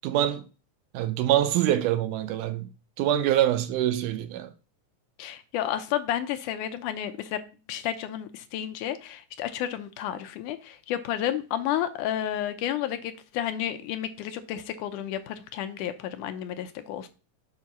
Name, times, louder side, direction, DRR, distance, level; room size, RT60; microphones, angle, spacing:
voice 1, 0.0-0.4 0.9-2.7 3.0-4.5, right 12 dB, 80° right, 2.0 m, -25 dB
voice 2, 5.2-7.4 7.7-17.1, left 11 dB, 80° left, 2.1 m, -31 dB
7.5 x 4.1 x 5.9 m
omnidirectional pair, 3.8 m